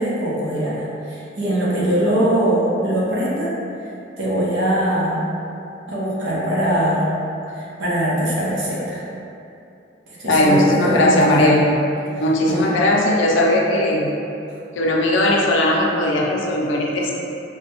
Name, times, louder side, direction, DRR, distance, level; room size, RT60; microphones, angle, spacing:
voice 1, 0.0-3.6 4.2-5.2 5.9-7.2 7.5-9.0 10.1-11.5 12.5-12.7, right 1 dB, 85° right, -7 dB, 0.8 m, -21 dB
voice 2, 10.3-11.7 12.2-14.1 14.8-17.1, left 1 dB, 85° left, -2 dB, 0.5 m, -18 dB
3.3 x 2.2 x 2.8 m, 2.6 s
head